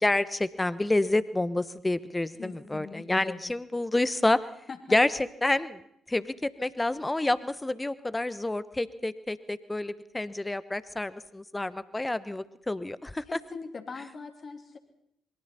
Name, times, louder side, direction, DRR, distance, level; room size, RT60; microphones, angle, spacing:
voice 1, 0.0-4.4 4.9-5.1 5.4-5.8 6.1-13.4, left 2 dB, 15° left, 16 dB, 1.1 m, -28 dB
voice 2, 2.4-3.4 4.7-5.0 13.3-14.8, left 4 dB, 40° left, 5 dB, 3.1 m, -41 dB
27.0 x 23.0 x 4.3 m, 0.73 s
figure-of-eight pair, 40°, 0 cm